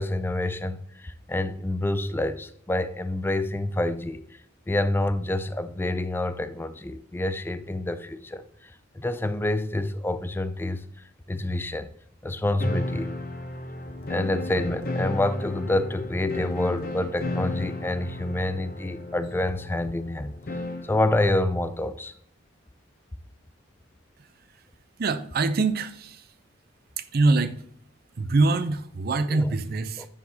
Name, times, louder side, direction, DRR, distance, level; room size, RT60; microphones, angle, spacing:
voice 1, 0.0-4.2 4.7-10.8 11.3-11.9 12.2-13.1 14.1-20.4 20.8-22.1 29.3-29.5 30.0-30.1, left 1 dB, 10° left, 0.3 m, -27 dB
sound 1, 12.6-21.0, left 2 dB, 45° left, 0.8 m, -33 dB
voice 2, 25.0-26.3 27.0-27.6 28.1-30.1, right 3 dB, 50° right, 0.5 m, -24 dB
9.6 x 4.8 x 2.8 m
head